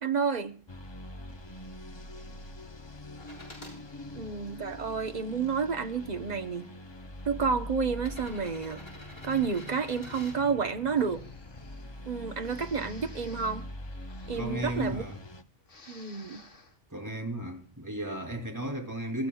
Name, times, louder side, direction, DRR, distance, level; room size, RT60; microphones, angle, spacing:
voice 1, 0.0-0.6 4.1-6.7 7.2-8.8 9.2-11.2 12.0-13.7 14.3-15.0 15.9-16.4, right 5 dB, 40° right, 1.1 m, -30 dB
sound 1, 0.7-15.4, left 1 dB, 25° left, 0.8 m, -44 dB
sound 2, 3.2-3.8 4.5-5.5 6.5-6.6 7.9-10.4 12.3-12.4, equal, 60° left, 6.1 m, -49 dB
Breathing, 10.9-11.9 12.4-15.4 15.6-16.8, left 3 dB, 90° left, 2.5 m, -52 dB
voice 2, 14.3-15.2 16.9-19.3, right 1 dB, 15° right, 2.9 m, -34 dB
27.0 x 13.5 x 2.3 m
omnidirectional pair, 1.2 m